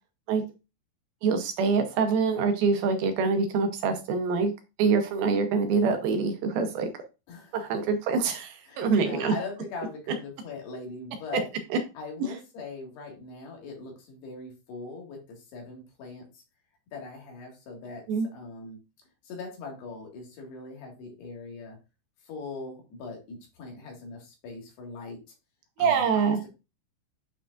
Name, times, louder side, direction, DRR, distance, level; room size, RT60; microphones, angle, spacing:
voice 1, 1.2-4.5 4.8-6.9 7.5-9.3 11.7-11.8 18.1-18.3 25.8-26.4, right 5 dB, 75° right, 6 dB, 2.4 m, -25 dB
voice 2, 7.3-7.6 8.7-11.5 12.0-16.4 16.9-18.0 18.3-18.8 19.2-21.8 22.2-25.2 25.8-26.5, left 3 dB, 80° left, 0 dB, 3.8 m, -41 dB
8.9 x 4.7 x 2.4 m, 0.28 s
omnidirectional pair, 4.7 m